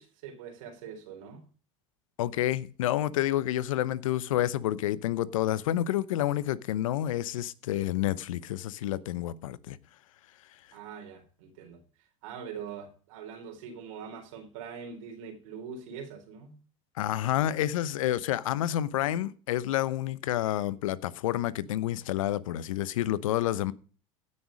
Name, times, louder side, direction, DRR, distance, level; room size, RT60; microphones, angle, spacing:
voice 1, 0.0-1.4 10.7-11.8 12.2-16.6, right 7 dB, 75° right, 3.8 m, -43 dB
voice 2, 2.2-9.8 17.0-23.7, left 13 dB, 80° left, 0.8 m, -29 dB
15.5 x 6.5 x 5.1 m
hypercardioid pair, 90°, 17 cm